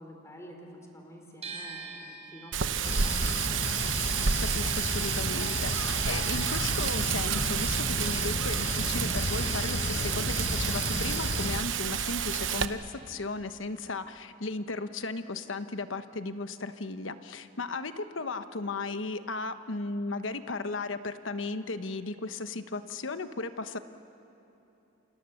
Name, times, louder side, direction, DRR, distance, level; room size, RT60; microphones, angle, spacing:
voice 1, 0.0-3.2, equal, 15° left, 2 dB, 3.9 m, -49 dB
sound 1, 1.4-7.4 7.7-9.0, right 5 dB, 35° right, 4.3 m, -47 dB
Wind, 2.5-12.7, right 7 dB, 75° right, 1.0 m, -30 dB
sound 2, 2.8-11.6, left 2 dB, 40° left, 0.8 m, -33 dB
voice 2, 4.4-23.8, left 3 dB, 80° left, 10 dB, 1.1 m, -35 dB
28.5 x 26.5 x 7.1 m, 3.0 s
head